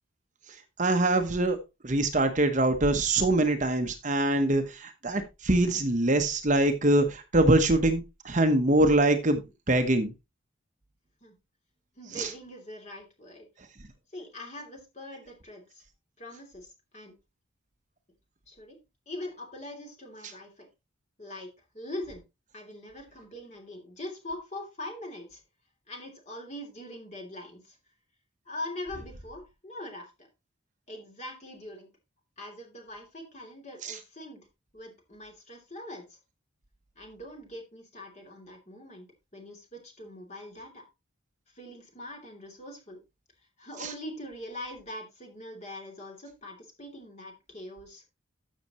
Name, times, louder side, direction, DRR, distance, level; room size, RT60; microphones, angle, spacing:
voice 1, 0.8-1.6 1.8-9.4 9.7-10.1 12.1-12.3 33.8-33.9, right 1 dB, 35° right, 7 dB, 1.0 m, -24 dB
voice 2, 12.0-13.5 14.1-15.8 16.2-17.1 18.5-18.8 19.1-20.7 21.2-22.2 22.5-25.4 25.9-27.8 28.4-30.3 30.9-31.9 32.4-34.4 34.7-36.2 37.0-39.1 39.3-40.9 41.5-43.0 43.6-48.0, left 1 dB, 35° left, 1 dB, 2.9 m, -42 dB
13.0 x 6.6 x 3.0 m, 0.25 s
head